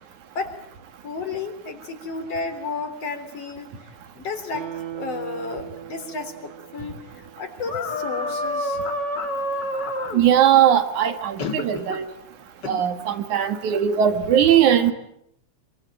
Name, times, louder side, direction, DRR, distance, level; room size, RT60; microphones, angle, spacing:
voice 1, 1.0-3.7 4.2-8.8, left 4 dB, 55° left, 7 dB, 4.5 m, -32 dB
Guitar, 4.5-7.8 8.2-8.3, right 10 dB, 55° right, 3.3 m, -38 dB
sound 1, 7.6-10.2 11.4-12.0 12.6-12.8, left 1 dB, 40° left, 2.5 m, -28 dB
voice 2, 10.1-12.1 12.7-14.9, right 9 dB, 85° right, 9 dB, 3.4 m, -19 dB
27.5 x 24.0 x 9.1 m, 0.75 s
omnidirectional pair, 3.3 m